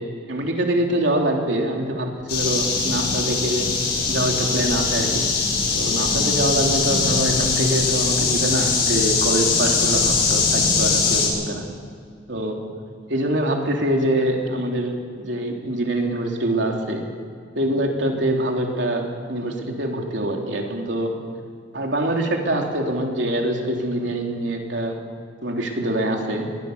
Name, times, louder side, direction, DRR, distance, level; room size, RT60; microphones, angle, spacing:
voice 1, 0.3-3.7 4.1-5.3 5.8-11.7 12.3-12.6 13.1-17.0 17.6-21.1 21.7-25.0 25.4-26.5, right 1 dB, 70° right, 1 dB, 3.5 m, -24 dB
sound 1, 2.3-11.3, left 4 dB, 55° left, 7.0 m, -21 dB
22.5 x 20.5 x 6.9 m, 2.2 s
head